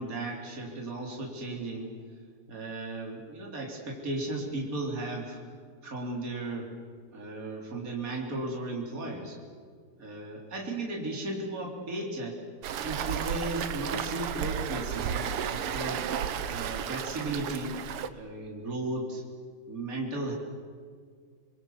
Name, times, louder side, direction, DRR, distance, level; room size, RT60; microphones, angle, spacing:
voice 1, 0.0-1.9 2.5-5.4 5.8-6.7 7.1-9.4 10.0-12.4 12.8-16.1 16.5-17.8 18.1-19.2 19.7-20.3, right 2 dB, 40° right, -1 dB, 4.0 m, -35 dB
Waves surf, 12.6-18.1, right 8 dB, 85° right, 1.9 m, -33 dB
28.0 x 22.0 x 7.3 m, 2.1 s
omnidirectional pair, 2.4 m